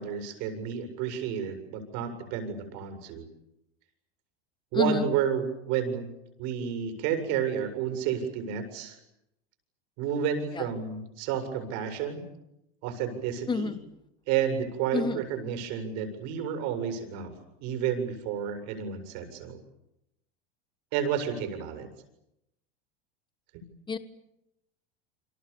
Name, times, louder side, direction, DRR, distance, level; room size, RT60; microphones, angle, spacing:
voice 1, 0.0-3.3 4.7-6.1 6.4-9.0 10.0-12.2 12.8-13.7 14.3-17.3 17.6-19.6 20.9-21.9 23.5-23.6, right 8 dB, 60° right, 8 dB, 7.6 m, -31 dB
voice 2, 4.7-5.1 10.5-10.6 13.5-13.8 14.9-15.2 23.9-24.0, left 4 dB, 15° left, 12 dB, 1.4 m, -28 dB
29.0 x 26.0 x 7.2 m, 0.85 s
supercardioid pair, 115°, 31 cm